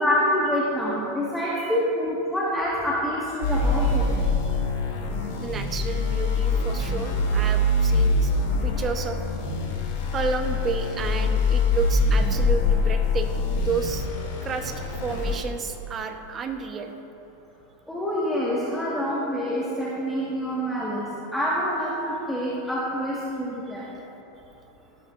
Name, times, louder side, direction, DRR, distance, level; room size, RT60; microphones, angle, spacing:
voice 1, 0.0-4.1 17.9-23.9, equal, 5° left, -7 dB, 1.7 m, -26 dB
sound 1, 3.4-15.3, left 2 dB, 70° left, 2.8 m, -24 dB
voice 2, 5.4-8.3 8.6-9.2 10.1-14.1 14.4-16.9, right 5 dB, 30° right, 6 dB, 1.0 m, -31 dB
17.5 x 11.0 x 2.6 m, 3.0 s
supercardioid pair, 125°, 0 cm